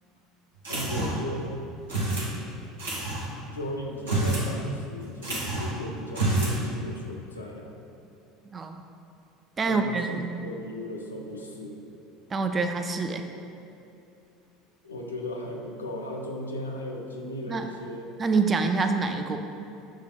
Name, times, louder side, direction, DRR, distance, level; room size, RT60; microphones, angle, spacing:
sound 1, 0.6-1.3 1.9-2.3 2.8-3.2 3.9-4.5 4.8-4.9 5.2-5.7 6.1-6.6, right 2 dB, 80° right, 1.0 m, -27 dB
voice 1, 0.7-1.5 3.5-7.7 9.6-10.2 10.4-11.8 14.8-18.1, equal, 90° left, 0 dB, 0.4 m, -36 dB
voice 2, 9.6-10.3 12.3-13.2 17.5-17.7 18.2-19.4, right 4 dB, 30° right, 6 dB, 0.3 m, -26 dB
6.2 x 2.2 x 3.5 m, 2.7 s
hypercardioid pair, 70°, 0 cm